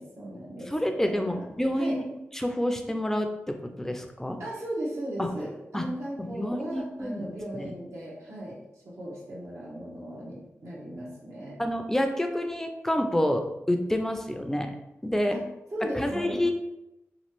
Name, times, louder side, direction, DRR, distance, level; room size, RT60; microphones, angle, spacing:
voice 1, 0.0-1.4 1.7-2.0 4.4-8.6 8.8-11.6 15.3-15.4 15.7-16.5, right 1 dB, 75° right, -6 dB, 1.0 m, -37 dB
voice 2, 0.7-2.0 2.3-4.4 5.2-5.3 5.7-5.8 6.2-7.3 7.5-7.7 11.6-14.8 15.0-15.4 15.9-16.5, left 1 dB, 10° left, 5 dB, 0.3 m, -28 dB
3.0 x 2.4 x 3.0 m, 0.90 s
wide cardioid pair, 80°, 5 cm